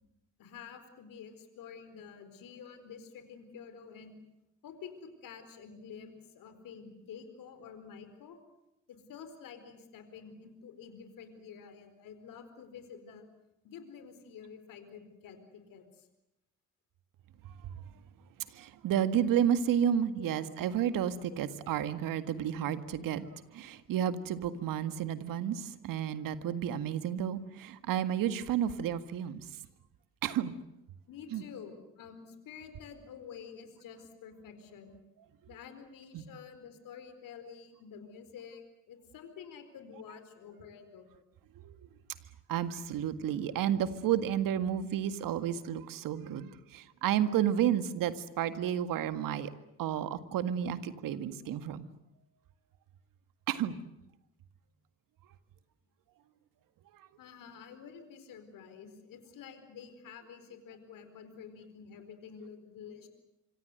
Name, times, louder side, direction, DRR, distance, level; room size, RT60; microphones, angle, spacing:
voice 1, 0.4-4.2 4.6-8.4 8.9-13.3 13.6-16.1 19.8-19.9 20.2-20.5 21.3-21.4 31.1-35.0 35.5-41.2 57.2-63.1, left 7 dB, 70° left, 9 dB, 4.4 m, -49 dB
voice 2, 18.5-23.2 23.5-29.5 30.2-30.5 31.3-31.4 36.1-36.2 41.6-41.8 42.5-49.5 49.8-51.8 53.5-53.8, right 10 dB, 70° right, 11 dB, 1.8 m, -31 dB
26.0 x 25.5 x 7.9 m, 0.89 s
hypercardioid pair, 50°, 35 cm